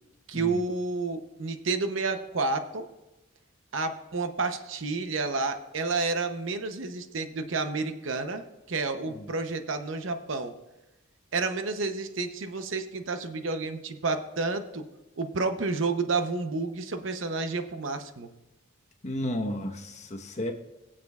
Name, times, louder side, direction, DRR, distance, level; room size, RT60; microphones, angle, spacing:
voice 1, 0.3-2.8 3.7-10.5 11.3-14.8 15.2-18.3, right 3 dB, 70° right, 8 dB, 0.7 m, -30 dB
voice 2, 19.0-20.5, left 1 dB, 35° left, 2 dB, 1.1 m, -32 dB
22.0 x 7.5 x 2.4 m, 1.0 s
head